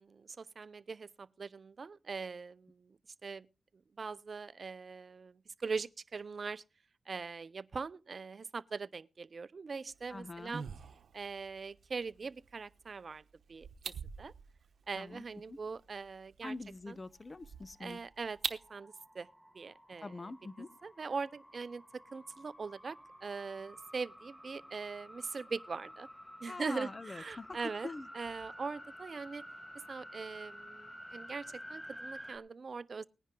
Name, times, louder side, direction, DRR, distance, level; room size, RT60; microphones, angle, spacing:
voice 1, 0.0-3.5 4.0-6.6 7.1-10.6 11.1-13.2 13.5-14.3 14.9-16.5 16.9-17.0 17.8-19.3 19.5-20.3 20.8-26.1 26.4-27.9 28.1-29.4 29.7-33.1, right 4 dB, 55° right, 0.6 m, -42 dB
sound 1, 9.9-18.7, right 6 dB, 80° right, 1.0 m, -47 dB
voice 2, 10.1-10.6 15.0-15.2 15.5-15.6 16.4-18.0 20.0-20.7 26.5-27.6 27.8-28.1, left 3 dB, 35° left, 0.8 m, -44 dB
sound 2, 17.9-32.4, equal, 5° left, 2.3 m, -51 dB
19.0 x 10.0 x 3.8 m
cardioid pair, 65°, 0 cm